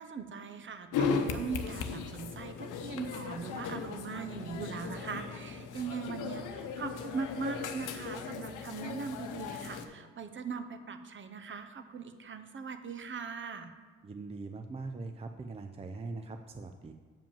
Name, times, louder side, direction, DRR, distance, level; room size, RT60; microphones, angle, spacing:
voice 1, 0.0-13.7, right 5 dB, 40° right, 9 dB, 0.8 m, -40 dB
sound 1, 0.9-9.8, left 5 dB, 85° left, 0.8 m, -37 dB
voice 2, 14.0-16.9, right 3 dB, 20° right, 6 dB, 0.5 m, -41 dB
7.2 x 5.1 x 7.3 m, 1.5 s
cardioid pair, 90°, 30 cm